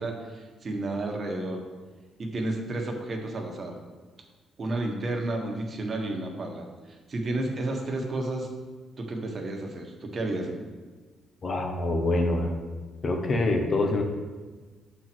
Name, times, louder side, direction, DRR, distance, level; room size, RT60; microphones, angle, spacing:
voice 1, 0.0-1.6 2.2-3.8 4.6-8.5 9.0-10.6, right 2 dB, 40° right, 2 dB, 1.4 m, -32 dB
voice 2, 11.4-12.5 13.0-14.0, left 2 dB, 40° left, 3 dB, 1.3 m, -25 dB
7.4 x 4.5 x 6.2 m, 1.4 s
cardioid pair, 90°, 0 cm